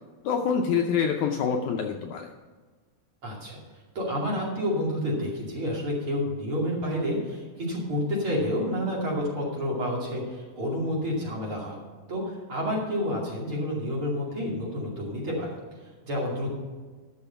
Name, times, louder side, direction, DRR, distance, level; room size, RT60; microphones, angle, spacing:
voice 1, 0.2-2.3, left 6 dB, 75° left, 3 dB, 1.9 m, -26 dB
voice 2, 3.2-3.6 3.9-11.8 12.1-12.2 12.5-15.6 16.0-16.5, equal, 40° right, -4 dB, 3.2 m, -29 dB
13.0 x 6.5 x 5.7 m, 1.4 s
omnidirectional pair, 4.0 m